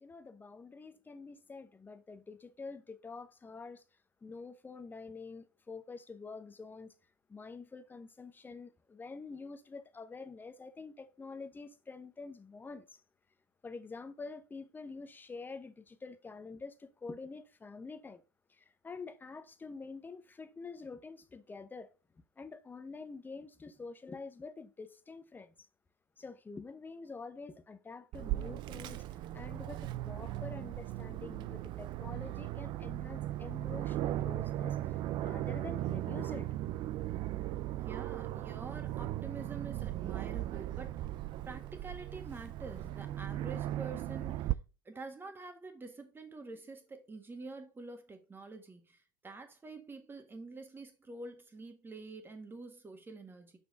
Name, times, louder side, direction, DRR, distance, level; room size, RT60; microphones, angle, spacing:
voice 1, 0.0-3.8 4.2-6.9 7.3-13.0 13.6-18.2 18.5-21.9 22.4-25.7 26.2-36.5, left 4 dB, 20° left, 0.9 m, -47 dB
Aircraft, 28.1-44.5, right 14 dB, 50° right, 0.4 m, -37 dB
voice 2, 37.7-41.0 41.5-44.6 44.9-53.6, right 3 dB, 20° right, 1.8 m, -47 dB
6.0 x 5.4 x 3.8 m
hypercardioid pair, 75°, 10 cm